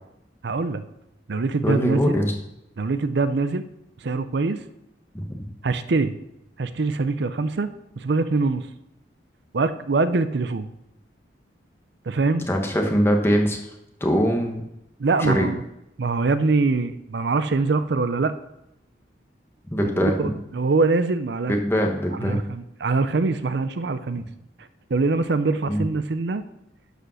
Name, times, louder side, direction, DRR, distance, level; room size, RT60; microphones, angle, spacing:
voice 1, 0.4-0.8 1.3-2.2 2.8-3.6 4.0-4.6 5.6-6.1 6.6-7.7 8.0-8.7 9.5-10.7 12.1-12.5 15.0-15.6 16.0-18.3 20.0-21.6 22.2-24.3 24.6-26.4, right 3 dB, 70° right, 12 dB, 0.5 m, -23 dB
voice 2, 1.6-2.3 5.1-5.3 12.5-13.6 14.0-14.6 15.2-15.5 19.7-20.3 21.5-22.4 25.7-25.8, equal, 15° left, 2 dB, 1.3 m, -22 dB
11.5 x 5.1 x 6.4 m, 0.85 s
head